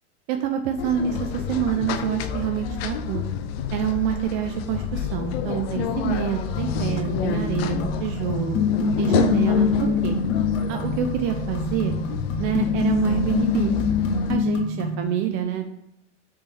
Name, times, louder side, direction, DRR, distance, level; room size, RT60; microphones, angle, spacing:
voice 1, 0.3-3.2 3.7-8.6 9.0-10.2 10.7-12.0 12.4-13.8 14.3-15.7, right 9 dB, 45° right, 5 dB, 0.5 m, -27 dB
sound 1, 0.8-14.4, left 9 dB, 60° left, 0.5 m, -29 dB
sound 2, 6.6-15.0, left 4 dB, 40° left, 1.0 m, -25 dB
3.4 x 3.1 x 4.4 m, 0.79 s
hypercardioid pair, 100°, 35 cm